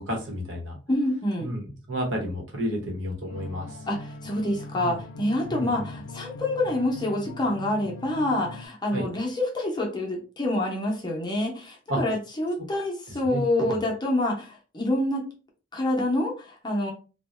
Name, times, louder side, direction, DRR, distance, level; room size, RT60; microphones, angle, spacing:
voice 1, 0.0-0.8 1.4-3.8 4.7-5.0 5.5-5.9 8.9-9.1 11.9-12.0 13.2-13.7, equal, 70° right, 1 dB, 1.0 m, -31 dB
voice 2, 0.9-1.5 3.9-15.3 15.7-16.9, left 1 dB, 20° left, 0 dB, 0.7 m, -27 dB
sound 1, 3.3-8.7, left 2 dB, 80° left, 0.5 m, -41 dB
2.5 x 2.2 x 3.1 m, 0.33 s
head